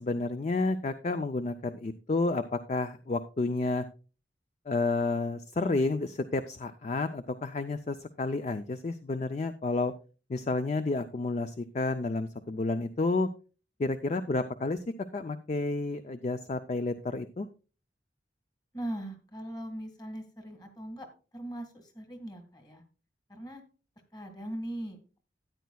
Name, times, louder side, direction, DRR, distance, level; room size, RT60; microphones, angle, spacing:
voice 1, 0.0-3.9 4.7-9.9 10.3-13.3 13.8-14.8 15.1-17.5, left 3 dB, 40° left, 10 dB, 0.4 m, -30 dB
voice 2, 18.7-21.1 21.3-22.8 23.3-23.6 24.1-25.2, right 1 dB, 20° left, 7 dB, 1.6 m, -40 dB
13.5 x 9.3 x 2.2 m, 0.34 s
head